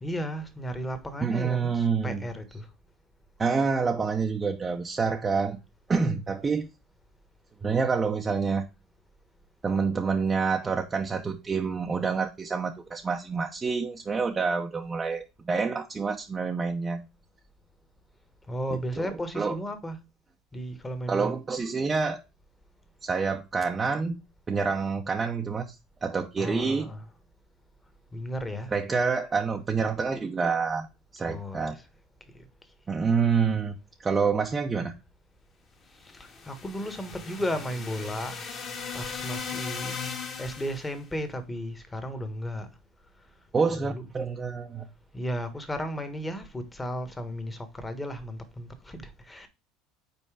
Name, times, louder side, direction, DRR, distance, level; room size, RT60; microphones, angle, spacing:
voice 1, 0.0-2.7 18.5-20.0 20.5-21.4 26.4-27.1 28.1-28.7 31.2-31.9 32.3-32.5 36.0-38.5 38.9-40.0 40.4-42.7 43.7-44.1 45.1-49.5, equal, 15° left, 1.3 m, -34 dB
voice 2, 1.2-2.2 3.4-5.6 5.9-6.7 7.6-8.7 9.6-17.0 19.0-19.1 19.3-19.6 21.1-22.2 23.0-24.2 24.5-25.7 26.0-26.9 28.7-30.9 31.1-31.8 32.9-35.0 43.5-44.9, right 5 dB, 25° right, 0.8 m, -27 dB
sound 1, 36.0-41.0, left 5 dB, 40° left, 1.8 m, -37 dB
5.4 x 4.3 x 4.9 m
supercardioid pair, 110°, 0 cm